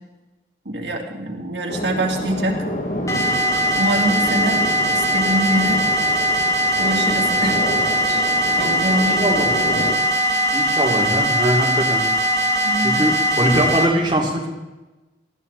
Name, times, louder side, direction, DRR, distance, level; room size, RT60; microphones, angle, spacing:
voice 1, 0.6-2.6 3.8-4.6 4.9-5.8 6.8-7.6 8.1-8.2 8.6-9.4 9.8-9.9 12.6-13.0, right 1 dB, 80° right, 0 dB, 2.9 m, -24 dB
sound 1, 1.7-9.9, equal, 45° left, 2.1 m, -29 dB
sound 2, 3.1-13.9, equal, 20° left, 2.1 m, -20 dB
voice 2, 8.9-9.5 10.5-12.0 12.8-14.5, right 1 dB, 25° right, -3 dB, 3.0 m, -21 dB
20.0 x 14.5 x 4.1 m, 1.1 s
head